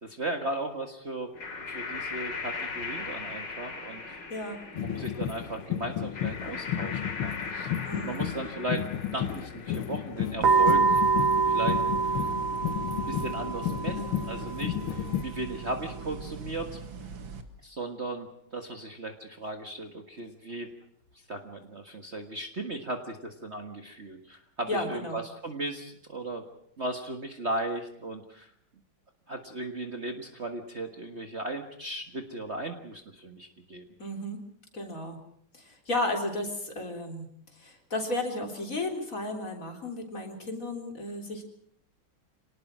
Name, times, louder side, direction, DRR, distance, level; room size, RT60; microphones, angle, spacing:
voice 1, 0.0-1.3 1.7-4.3 4.8-11.0 11.5-12.3 13.1-16.8 17.6-20.7 21.3-26.5 26.8-28.5 29.3-33.9, right 2 dB, 35° right, 5 dB, 1.8 m, -36 dB
sound 1, 1.3-10.2, left 4 dB, 55° left, 3.5 m, -39 dB
sound 2, 4.8-15.2, left 11 dB, 80° left, 1.9 m, -33 dB
voice 2, 7.9-8.2 24.7-25.2 34.0-34.4 34.7-35.2 35.7-37.3 37.6-41.4, left 1 dB, 40° left, 3 dB, 4.0 m, -33 dB
sound 3, 10.4-17.4, right 4 dB, 65° right, 2.6 m, -27 dB
26.0 x 19.0 x 6.2 m, 0.70 s
omnidirectional pair, 2.3 m